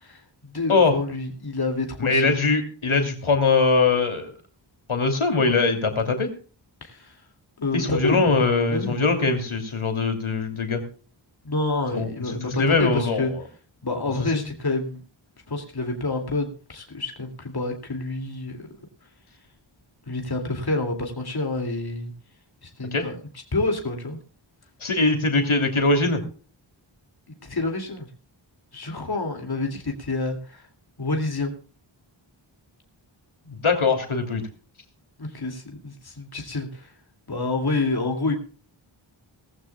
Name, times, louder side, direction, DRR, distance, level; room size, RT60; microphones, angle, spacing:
voice 1, 0.0-2.3 6.8-7.1 7.6-8.4 8.7-9.0 11.4-12.5 12.8-13.3 13.8-15.0 15.5-18.7 20.1-22.1 22.6-23.1 23.5-24.2 27.3-28.1 28.7-30.7 31.0-31.5 35.2-36.9 37.3-38.4, left 2 dB, 50° left, 3 dB, 2.5 m, -28 dB
voice 2, 2.0-4.3 4.9-6.3 7.7-10.8 11.9-13.4 14.2-14.4 22.9-23.1 24.8-26.2 33.5-34.4, left 3 dB, 80° left, 5 dB, 2.9 m, -22 dB
19.0 x 14.5 x 2.3 m, 0.38 s
wide cardioid pair, 65°, 48 cm